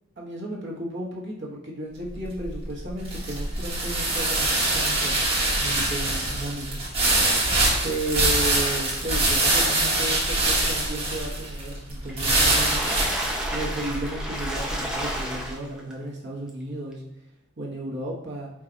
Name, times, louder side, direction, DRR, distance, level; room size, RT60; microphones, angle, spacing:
voice 1, 0.2-5.3 5.6-6.8 7.8-17.0 17.6-18.5, right 1 dB, 60° right, -3 dB, 1.0 m, -34 dB
sound 1, 2.1-15.3, right 2 dB, 30° right, 1.0 m, -24 dB
Water / Splash splatter, 12.1-15.9 16.5-16.6 16.9-17.0, equal, 5° right, 0.5 m, -31 dB
4.6 x 2.3 x 3.8 m, 0.86 s
head